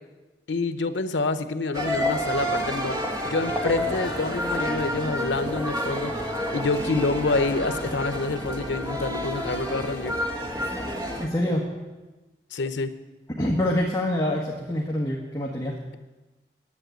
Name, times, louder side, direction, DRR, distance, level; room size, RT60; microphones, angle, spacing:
voice 1, 0.5-3.0 3.2-10.1 12.5-12.9, left 3 dB, 85° left, 10 dB, 0.8 m, -27 dB
sound 1, 1.7-11.3, equal, 20° right, 1.5 m, -29 dB
voice 2, 11.2-11.7 13.3-15.8, left 1 dB, 20° left, -3 dB, 1.4 m, -26 dB
11.0 x 9.0 x 9.1 m, 1.2 s
head